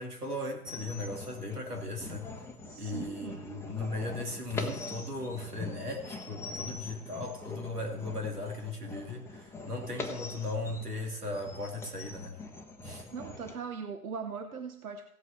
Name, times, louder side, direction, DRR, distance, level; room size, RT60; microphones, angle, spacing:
voice 1, 0.0-2.2 2.8-12.4 12.8-13.0, left 2 dB, 85° right, 1 dB, 2.6 m, -37 dB
sound 1, 0.7-13.6, left 3 dB, 5° left, 0.9 m, -43 dB
voice 2, 2.7-3.4 13.1-15.1, right 6 dB, 70° right, 8 dB, 1.0 m, -40 dB
16.5 x 8.1 x 4.5 m, 0.77 s
figure-of-eight pair, 105°, 45 cm